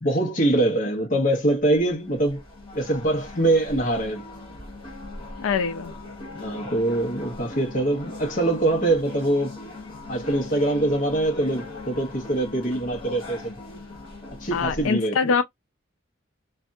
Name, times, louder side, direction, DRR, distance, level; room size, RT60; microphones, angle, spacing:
voice 1, 0.0-2.4 2.7-4.2 6.3-9.5 10.1-13.6 14.3-15.3, right 1 dB, 45° left, 1.0 m, -23 dB
sound 1, 1.8-14.9, left 2 dB, 25° left, 1.6 m, -39 dB
voice 2, 5.4-5.9 14.5-15.4, left 5 dB, 85° left, 0.4 m, -23 dB
2.6 x 2.6 x 2.2 m
head